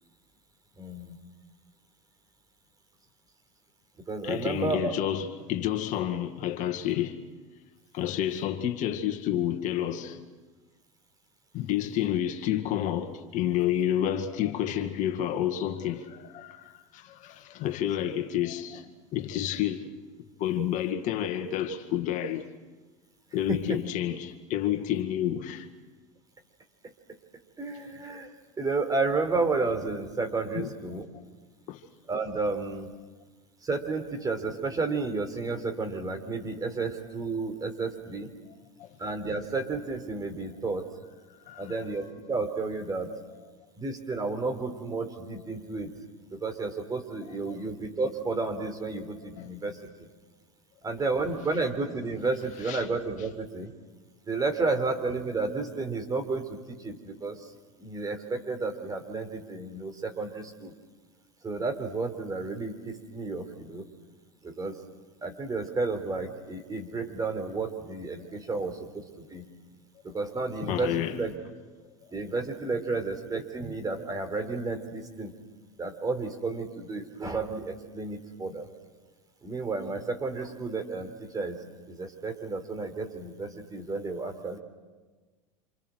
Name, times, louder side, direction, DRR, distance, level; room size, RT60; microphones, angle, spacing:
voice 1, 0.8-1.2 4.1-4.9 23.5-23.8 27.6-28.3 28.6-31.1 32.1-32.9 33.6-38.3 39.0-40.9 41.6-43.1 43.8-45.9 46.3-50.1 50.8-53.7 54.3-57.5 57.8-60.7 61.4-63.8 64.4-64.8 65.2-68.8 69.2-69.4 70.0-71.3 72.1-75.3 75.8-78.7 79.4-81.6 81.9-84.6, right 3 dB, 20° right, 4.3 m, -32 dB
voice 2, 4.2-7.2 7.9-10.2 11.5-19.9 20.4-22.5 23.3-25.7 30.6-30.7 31.7-31.8 38.8-38.9 41.5-41.8 47.5-47.6 49.4-49.5 52.6-52.8 70.7-71.2 72.0-72.1, left 11 dB, 50° left, 2.1 m, -30 dB
28.5 x 27.5 x 6.5 m
hypercardioid pair, 95°, 17 cm